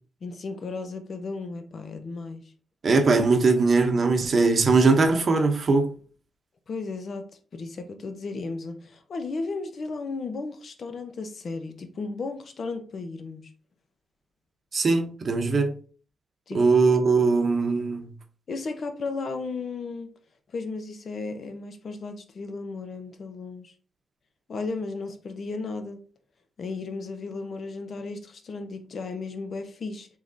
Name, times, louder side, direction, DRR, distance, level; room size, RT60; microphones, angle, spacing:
voice 1, 0.2-2.4 6.7-13.5 16.5-16.6 18.5-20.1 20.5-23.7 24.5-26.0 26.6-30.1, left 3 dB, 55° left, 0.6 m, -34 dB
voice 2, 2.8-5.9 14.7-15.7 16.5-18.1, right 3 dB, 50° right, 0.7 m, -21 dB
3.6 x 3.2 x 2.6 m
cardioid pair, 70°, 0 cm